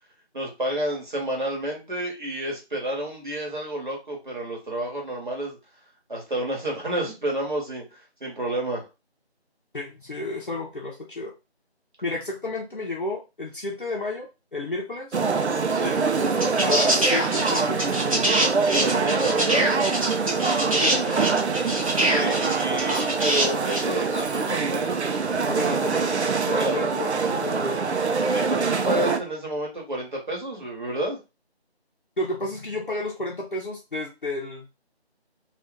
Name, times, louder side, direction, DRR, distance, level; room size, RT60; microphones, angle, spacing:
voice 1, 0.3-5.6 6.1-8.8 15.7-16.0 18.7-19.8 22.0-25.0 26.6-26.8 28.3-31.2, right 1 dB, 45° right, -1 dB, 1.2 m, -30 dB
voice 2, 9.7-11.3 12.0-15.2 16.6-17.8 20.8-21.4 25.5-26.1 26.4-27.8 32.2-34.7, left 2 dB, 50° left, -4 dB, 0.7 m, -32 dB
sound 1, 15.1-29.2, right 4 dB, 80° right, 0.5 m, -24 dB
sound 2, 16.4-23.9 25.1-25.2, right 1 dB, 30° right, 0.9 m, -24 dB
2.7 x 2.4 x 3.5 m, 0.27 s
figure-of-eight pair, 165°, 33 cm